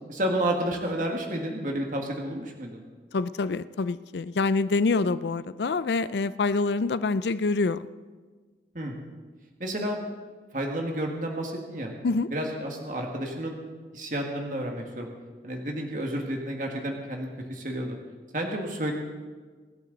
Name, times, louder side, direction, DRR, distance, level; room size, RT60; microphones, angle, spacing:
voice 1, 0.1-2.8 8.8-9.0 9.6-10.0 10.5-11.9 12.3-13.6 13.9-15.1 15.4-18.0 18.3-18.9, right 1 dB, 45° right, 1 dB, 1.8 m, -31 dB
voice 2, 3.1-7.8 12.0-12.3, left 3 dB, 80° left, 15 dB, 0.5 m, -26 dB
24.0 x 11.5 x 4.0 m, 1.4 s
head